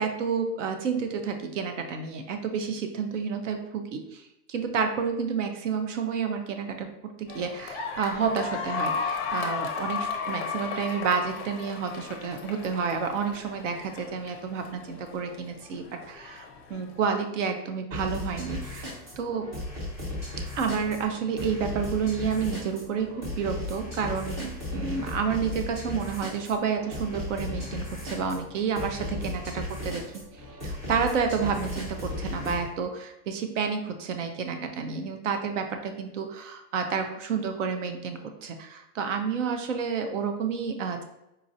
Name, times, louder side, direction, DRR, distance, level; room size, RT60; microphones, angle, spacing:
voice 1, 0.0-4.2 4.5-6.9 7.2-19.4 20.5-30.0 30.6-41.0, right 6 dB, 55° right, 6 dB, 0.5 m, -30 dB
sound 1, 7.3-17.1, left 5 dB, 45° left, 0.5 m, -35 dB
sound 2, 17.9-32.7, left 1 dB, 20° right, 0.7 m, -36 dB
4.1 x 2.3 x 2.6 m, 0.88 s
supercardioid pair, 170°, 46 cm